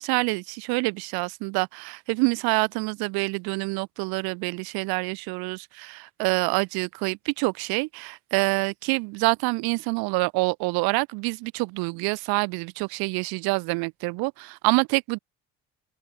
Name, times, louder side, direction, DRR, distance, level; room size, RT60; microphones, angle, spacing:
voice 1, 0.0-15.2, right 27 dB, 80° right, 4.6 m, -26 dB
open air
hypercardioid pair, 60°, 36 cm